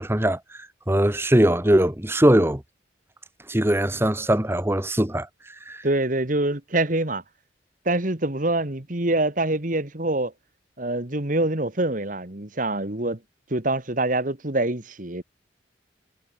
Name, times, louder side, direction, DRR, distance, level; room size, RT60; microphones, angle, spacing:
voice 1, 0.0-2.6 3.5-5.3 5.7-5.8, right 1 dB, 15° right, 1.4 m, -21 dB
voice 2, 5.8-7.2 7.9-10.3 10.8-13.2 13.5-15.2, right 2 dB, 45° right, 2.1 m, -25 dB
head